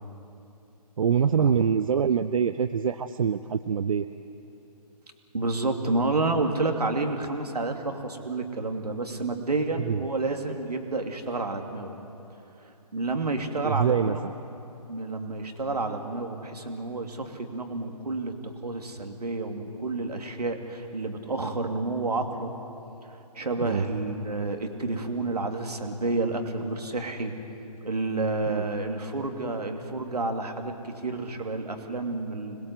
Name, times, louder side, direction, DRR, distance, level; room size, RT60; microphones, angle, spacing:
voice 1, 1.0-4.1 9.8-10.0 13.6-14.3 23.6-23.8 28.6-28.7, right 7 dB, 55° right, 11 dB, 0.6 m, -24 dB
voice 2, 5.3-12.0 12.6-14.3 14.9-22.5 23.0-27.3 27.8-32.6, right 3 dB, 75° right, 4 dB, 2.6 m, -30 dB
26.0 x 21.0 x 7.9 m, 2.9 s
figure-of-eight pair, 140°, 20 cm